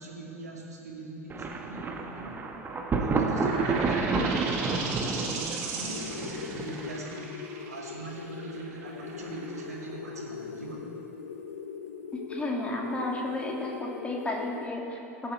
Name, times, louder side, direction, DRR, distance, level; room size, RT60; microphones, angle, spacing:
voice 1, 0.0-2.5 3.0-7.4 7.7-10.9, right 2 dB, 85° right, -2 dB, 2.1 m, -42 dB
Thunder, 1.3-7.1, right 4 dB, 25° right, 1.1 m, -30 dB
sound 1, 3.2-10.5, right 4 dB, 55° right, 2.0 m, -37 dB
sound 2, 5.9-14.7, left 6 dB, 80° left, 0.6 m, -41 dB
voice 2, 12.1-15.3, left 2 dB, 15° left, -1 dB, 2.1 m, -33 dB
20.0 x 7.6 x 3.3 m, 2.8 s
hypercardioid pair, 85°, 8 cm